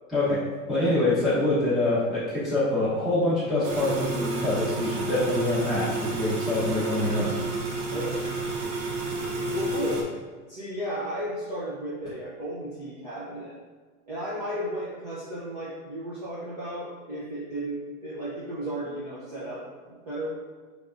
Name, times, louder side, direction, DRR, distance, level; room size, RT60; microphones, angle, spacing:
voice 1, 0.1-0.4 0.7-7.6, left 1 dB, ahead, -13 dB, 1.0 m, -25 dB
sound 1, 3.6-10.0, right 2 dB, 55° right, 0.9 m, -30 dB
voice 2, 7.9-8.2 9.5-10.2 10.5-13.6 14.1-20.3, right 1 dB, 30° right, -9 dB, 0.5 m, -34 dB
4.9 x 3.3 x 2.4 m, 1.5 s
supercardioid pair, 180°, 43 cm